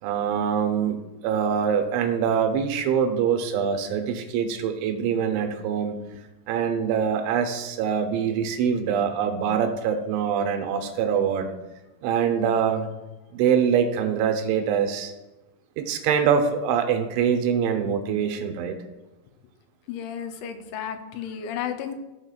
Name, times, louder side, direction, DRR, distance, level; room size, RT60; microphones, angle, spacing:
voice 1, 0.0-6.0 6.5-11.5 12.0-12.9 13.3-15.1 15.8-18.8, right 7 dB, 85° right, 6 dB, 3.2 m, -24 dB
voice 2, 19.9-22.0, left 8 dB, 80° left, 7 dB, 2.9 m, -33 dB
15.0 x 5.9 x 2.4 m, 1.0 s
omnidirectional pair, 5.3 m